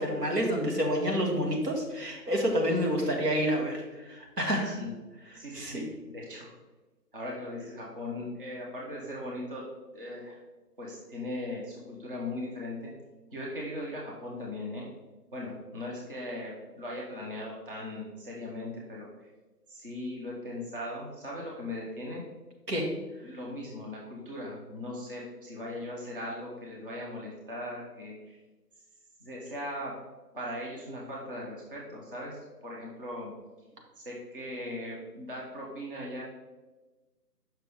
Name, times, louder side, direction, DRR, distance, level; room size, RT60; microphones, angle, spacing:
voice 1, 0.0-4.8 5.5-5.8 22.7-22.9, equal, 70° right, 0 dB, 1.9 m, -28 dB
voice 2, 5.3-5.8 6.1-6.5 7.1-9.7 9.9-10.4 10.8-12.9 13.3-14.9 15.3-19.3 19.7-22.2 23.2-28.4 29.2-29.9 30.3-33.3 34.0-36.2, left 1 dB, 30° right, -4 dB, 1.0 m, -39 dB
6.8 x 5.9 x 3.4 m, 1.2 s
figure-of-eight pair, 160°, 50 cm